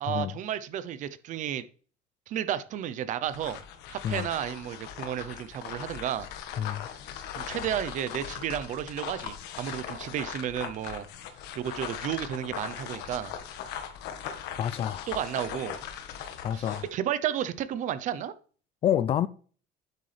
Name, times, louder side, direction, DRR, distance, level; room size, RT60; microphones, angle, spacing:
voice 1, 0.0-1.6 2.3-3.6 3.9-6.3 7.3-11.1 11.6-13.3 15.1-15.8 16.5-18.3, right 10 dB, 45° right, 0.7 m, -32 dB
sound 1, 3.2-16.9, left 8 dB, 75° left, 1.5 m, -39 dB
voice 2, 14.6-15.1 16.4-16.8 18.8-19.3, left 10 dB, 35° left, 0.3 m, -28 dB
9.7 x 8.1 x 3.4 m
cardioid pair, 180°, 17 cm